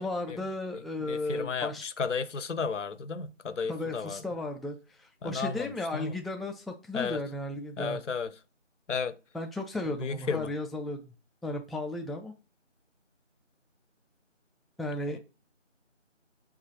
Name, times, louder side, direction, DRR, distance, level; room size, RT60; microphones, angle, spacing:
voice 1, 0.0-1.8 3.7-8.0 9.3-11.1 11.4-12.3 14.8-15.2, left 2 dB, ahead, 0.3 m, -35 dB
voice 2, 1.1-4.2 5.2-6.1 6.9-7.2 7.8-8.3 8.9-9.2 10.0-10.5 15.1-15.2, left 5 dB, 75° left, 0.5 m, -33 dB
5.1 x 2.4 x 3.0 m
figure-of-eight pair, 170°, 37 cm